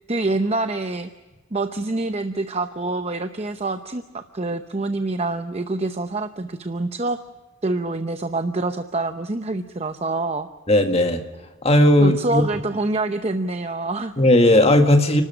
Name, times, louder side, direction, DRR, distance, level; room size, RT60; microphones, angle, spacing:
voice 1, 0.1-1.1 1.5-7.2 7.6-10.5 12.0-14.1, right 2 dB, 30° right, 8 dB, 0.8 m, -26 dB
voice 2, 10.7-11.2 11.6-12.4 14.2-15.2, left 1 dB, 30° left, 6 dB, 2.0 m, -16 dB
30.0 x 13.0 x 9.8 m, 1.2 s
head